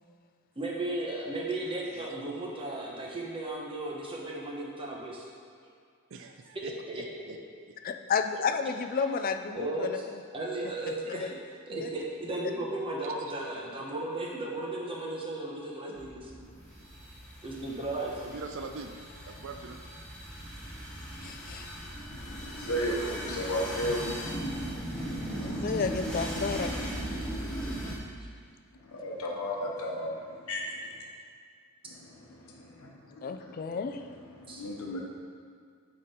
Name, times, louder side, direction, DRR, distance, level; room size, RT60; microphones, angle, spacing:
voice 1, 0.6-5.3 6.9-7.0 9.0-9.1 9.5-10.0 10.3-11.4 11.7-16.4 17.4-18.2 34.5-34.6, right 2 dB, 25° right, -2 dB, 0.9 m, -35 dB
voice 2, 6.1-7.7 18.2-19.8 30.6-30.7 31.1-31.3, right 4 dB, 60° right, 5 dB, 0.4 m, -43 dB
voice 3, 7.8-10.2 11.1-11.3 11.8-11.9 21.2-21.7 25.4-26.9 33.2-34.0, left 5 dB, 40° left, 7 dB, 0.3 m, -32 dB
sound 1, 16.0-28.0, right 1 dB, 5° left, 1.0 m, -38 dB
voice 4, 22.2-24.8 28.8-31.0 31.8-35.0, equal, 80° left, -1 dB, 0.8 m, -35 dB
8.4 x 3.7 x 4.3 m, 2.2 s
head